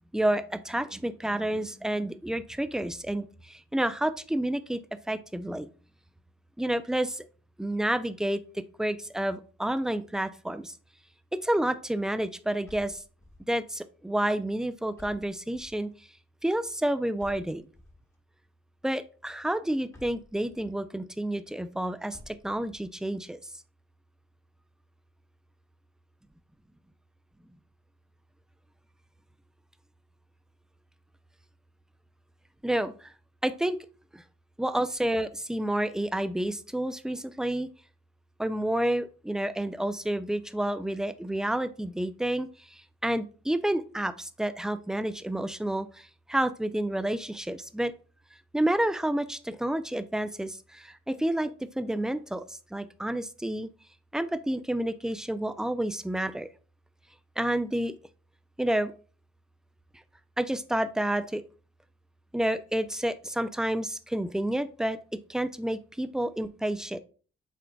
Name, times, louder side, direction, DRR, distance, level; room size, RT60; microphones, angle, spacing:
voice 1, 0.1-4.8 5.1-5.7 6.6-7.2 7.6-8.4 8.8-10.7 11.3-13.0 13.5-15.9 16.4-17.6 18.8-23.4 32.6-32.9 33.4-33.8 34.1-34.2 34.6-37.7 38.4-42.5 43.0-45.9 46.3-47.9 48.5-51.5 51.8-52.4 52.7-53.7 54.1-56.5 57.4-57.9 58.6-58.9 60.4-61.4 62.3-65.0 65.3-67.0, right 1 dB, 5° right, 13 dB, 0.3 m, -29 dB
sound 1, 12.6-13.6 15.0-15.9 17.2-18.1 19.9-20.8 22.1-23.0, left 1 dB, 15° left, 1.1 m, -52 dB
5.8 x 3.8 x 2.2 m, 0.38 s
cardioid pair, 90°, 20 cm